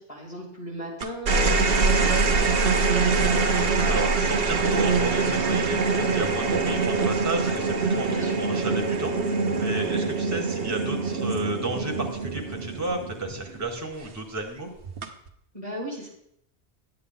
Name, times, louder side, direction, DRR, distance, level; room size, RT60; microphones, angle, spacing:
voice 1, 0.0-3.5 8.0-8.5 9.7-10.0 15.5-16.1, equal, 30° left, -1 dB, 2.4 m, -37 dB
sound 1, 1.0-13.6 14.8-15.3, right 4 dB, 60° right, 1.1 m, -24 dB
voice 2, 3.9-14.7, right 2 dB, 15° right, 2 dB, 1.3 m, -33 dB
9.6 x 8.7 x 3.9 m, 0.73 s
omnidirectional pair, 1.1 m